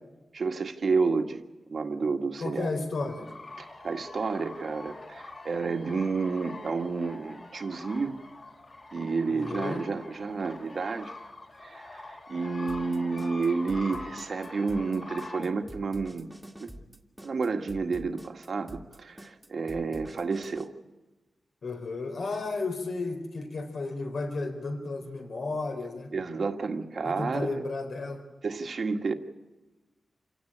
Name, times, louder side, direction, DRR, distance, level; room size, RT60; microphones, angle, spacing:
voice 1, 0.3-1.4 1.7-2.7 3.6-8.1 8.9-11.1 11.6-16.3 16.6-16.7 17.2-20.7 26.1-27.6 28.4-29.1, right 4 dB, 55° right, 5 dB, 1.8 m, -30 dB
voice 2, 2.4-3.3 9.3-9.9 21.6-26.1 27.0-28.2, left 3 dB, 65° left, 5 dB, 4.1 m, -33 dB
sound 1, 3.0-15.5, left 2 dB, 40° left, 4.3 m, -44 dB
sound 2, 12.7-20.7, equal, 5° right, 2.0 m, -46 dB
28.0 x 17.0 x 8.7 m, 1.1 s
wide cardioid pair, 140°, 0 cm